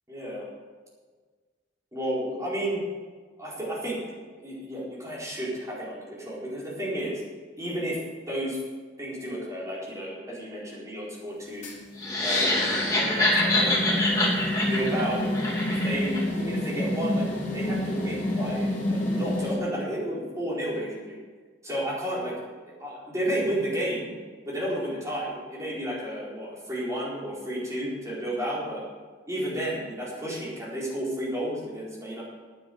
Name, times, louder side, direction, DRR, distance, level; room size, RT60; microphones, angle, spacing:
voice 1, 0.1-0.5 1.9-2.8 3.4-4.0 4.4-7.2 7.6-8.0 8.3-8.6 9.0-11.7 12.2-15.3 15.7-17.2 17.5-21.2 21.6-22.3 22.7-24.1 24.5-28.8 29.3-32.2, equal, 15° right, -7 dB, 4.6 m, -32 dB
sound 1, 11.6-19.5, left 1 dB, 40° left, 3.0 m, -29 dB
sound 2, 12.0-16.2, left 1 dB, 20° left, 2.9 m, -25 dB
10.0 x 9.4 x 7.8 m, 1.5 s
head